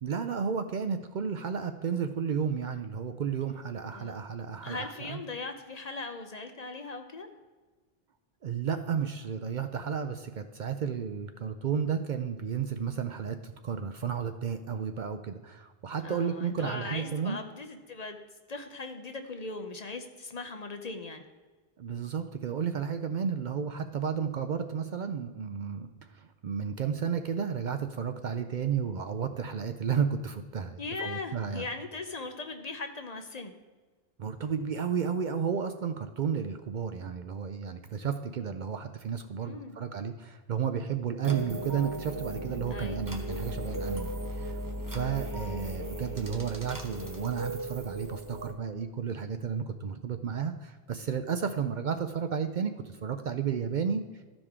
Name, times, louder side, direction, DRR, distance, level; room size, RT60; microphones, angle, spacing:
voice 1, 0.0-5.2 8.4-17.4 21.8-31.7 34.2-44.6 44.9-54.2, right 7 dB, 55° right, 8 dB, 0.6 m, -32 dB
voice 2, 4.6-7.3 16.0-18.2 18.5-21.2 30.8-33.5 39.4-39.8 42.7-43.0 45.4-45.8, left 3 dB, 45° left, 6 dB, 0.8 m, -39 dB
sound 1, 41.2-48.5, right 1 dB, 20° right, 0.9 m, -37 dB
13.5 x 5.0 x 3.6 m, 1.3 s
omnidirectional pair, 1.0 m